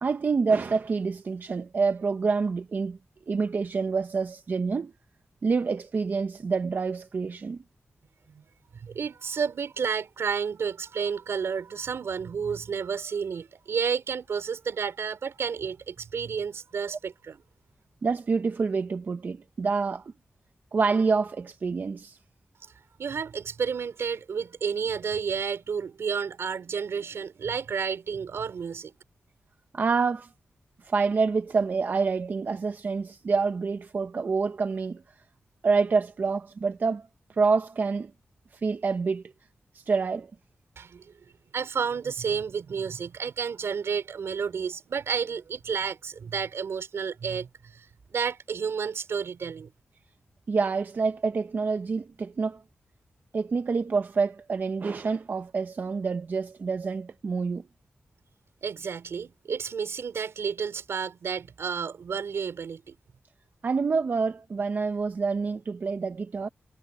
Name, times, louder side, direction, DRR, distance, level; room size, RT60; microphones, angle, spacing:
voice 1, 0.0-3.0 3.3-4.9 5.4-7.6 18.0-20.1 20.7-22.2 29.7-30.3 30.8-35.0 35.6-38.1 38.5-39.2 39.7-40.3 50.5-52.6 53.3-57.6 63.6-66.5, right 4 dB, 45° right, 0.6 m, -27 dB
voice 2, 8.8-17.4 23.0-28.9 40.8-41.1 41.5-47.5 47.7-47.9 48.1-49.7 58.6-63.0, right 6 dB, 75° right, 4.3 m, -31 dB
wide cardioid pair, 150°, 4 cm